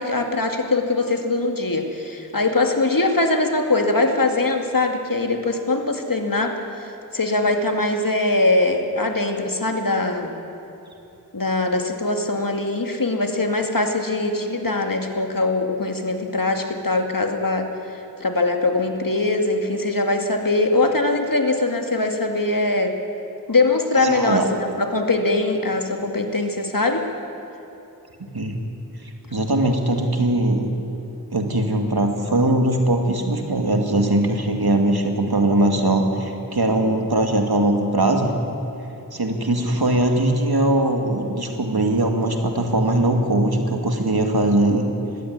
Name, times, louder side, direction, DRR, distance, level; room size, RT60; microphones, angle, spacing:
voice 1, 0.0-6.6 7.1-10.3 11.3-22.9 23.5-27.0, left 2 dB, 60° left, 4 dB, 2.2 m, -22 dB
voice 2, 23.9-24.4 28.3-28.6 29.3-30.7 31.3-38.3 39.1-44.9, right 1 dB, 80° right, 3 dB, 2.4 m, -20 dB
20.0 x 16.0 x 9.6 m, 2.9 s
wide cardioid pair, 45°, 37 cm